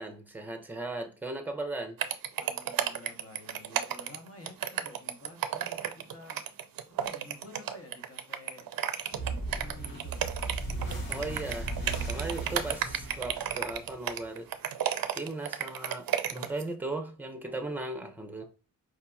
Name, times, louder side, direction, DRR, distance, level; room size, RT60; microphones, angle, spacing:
voice 1, 0.0-2.0 11.1-11.8 12.0-14.5 15.1-18.4, right 2 dB, 5° right, 0.7 m, -37 dB
sound 1, 2.0-16.6, right 9 dB, 80° right, 0.5 m, -32 dB
voice 2, 2.4-6.4 7.0-8.7 9.5-10.2 17.4-17.5 18.4-18.5, left 2 dB, 40° left, 1.1 m, -51 dB
sound 2, 9.1-14.2, right 2 dB, 85° left, 1.4 m, -37 dB
4.8 x 2.8 x 2.3 m
wide cardioid pair, 90°, 35 cm